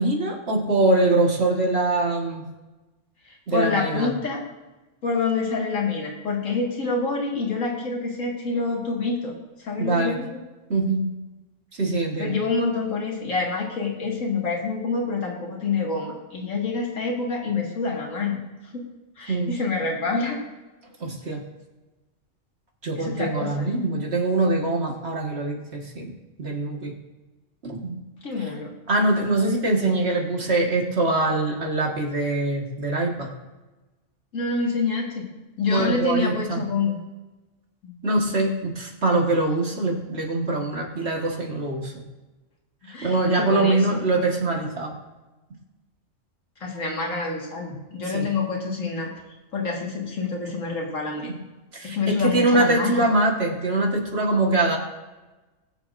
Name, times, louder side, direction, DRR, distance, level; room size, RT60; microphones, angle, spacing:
voice 1, 0.0-2.5 3.5-4.1 9.8-10.2 10.7-11.1 11.8-12.4 19.3-19.5 21.0-21.4 22.8-26.1 26.4-26.9 27.6-28.0 28.4-28.5 28.9-33.3 35.7-36.6 38.0-42.0 43.0-44.9 48.1-48.3 51.7-54.8, right 2 dB, 55° right, 0 dB, 1.9 m, -23 dB
voice 2, 3.5-4.4 5.0-9.3 9.6-10.4 12.2-18.4 18.7-18.8 19.2-20.4 23.0-23.8 28.2-28.7 34.3-35.3 35.6-37.0 37.8-37.9 42.8-44.0 46.6-49.1 49.5-51.3 51.8-53.0, left 4 dB, 85° left, -1 dB, 2.3 m, -27 dB
21.5 x 7.2 x 2.6 m, 1.1 s
omnidirectional pair, 1.3 m